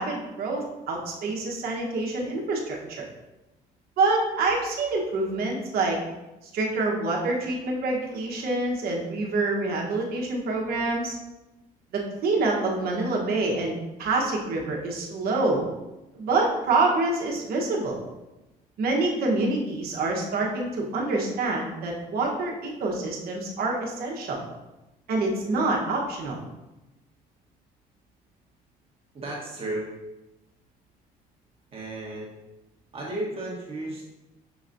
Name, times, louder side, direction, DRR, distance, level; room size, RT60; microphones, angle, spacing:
voice 1, 0.0-3.1 4.0-6.0 6.5-11.2 11.9-15.6 16.1-18.0 18.8-24.4 25.1-26.4, right 3 dB, 65° right, -1 dB, 1.1 m, -26 dB
voice 2, 29.1-29.9 31.7-32.3 32.9-34.0, right 1 dB, 35° right, -4 dB, 1.2 m, -33 dB
6.1 x 3.1 x 2.6 m, 1.0 s
cardioid pair, 110°, 17 cm